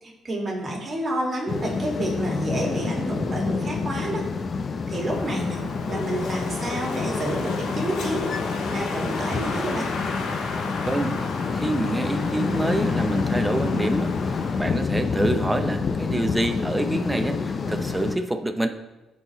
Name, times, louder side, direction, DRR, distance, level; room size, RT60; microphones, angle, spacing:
voice 1, 0.0-4.2 4.9-5.6 5.9-8.3 8.7-9.9, right 1 dB, 35° right, -1 dB, 1.9 m, -29 dB
sound 1, 1.5-18.2, left 5 dB, 45° left, 0.4 m, -28 dB
Wind, 4.9-14.8, left 4 dB, 70° left, 0.7 m, -32 dB
voice 2, 10.9-11.2 11.5-18.7, right 1 dB, 10° right, 6 dB, 0.6 m, -27 dB
11.0 x 4.1 x 3.0 m, 1.1 s
cardioid pair, 90°, 0 cm